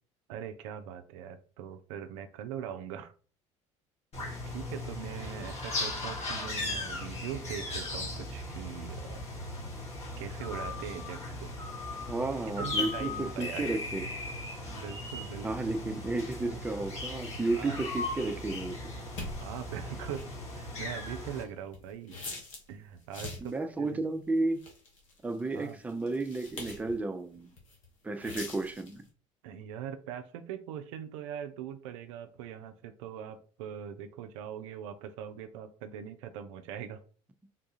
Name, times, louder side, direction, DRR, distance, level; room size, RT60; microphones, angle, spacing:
voice 1, 0.3-3.1 4.5-9.2 10.2-11.5 12.6-13.8 14.7-15.5 17.6-17.8 19.4-22.2 22.7-24.0 25.5-25.8 29.4-37.0, right 9 dB, 70° right, 0.4 m, -41 dB
sound 1, 4.1-21.4, left 2 dB, 40° left, 1.3 m, -38 dB
voice 2, 12.1-14.0 15.4-18.8 23.4-24.6 25.2-27.5 28.0-29.0, right 2 dB, 10° right, 0.4 m, -32 dB
sound 2, 19.2-22.7 23.0-23.6 24.2-27.0 27.3-27.9 28.2-29.0, left 2 dB, 80° left, 0.9 m, -44 dB
3.5 x 2.3 x 2.7 m
hypercardioid pair, 65°, 17 cm